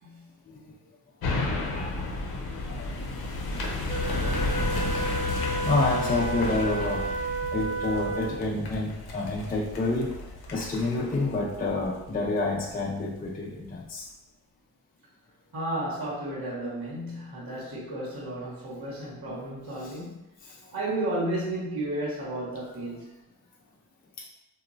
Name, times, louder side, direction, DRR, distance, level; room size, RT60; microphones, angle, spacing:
sound 1, 1.2-12.7 13.1-13.2, left 2 dB, 65° left, 0.7 m, -32 dB
voice 1, 1.7-2.2 2.7-2.9 5.6-7.0 7.5-10.1 10.5-14.1 19.7-19.9 24.2-24.3, left 2 dB, 25° left, -3 dB, 0.5 m, -28 dB
Wind instrument woodwind instrument, 3.9-8.5, right 2 dB, 80° right, 0.5 m, -32 dB
voice 2, 15.5-20.2 20.7-23.1, right 1 dB, 60° right, -6 dB, 1.1 m, -33 dB
2.9 x 2.2 x 2.5 m, 0.97 s
cardioid pair, 55°, 39 cm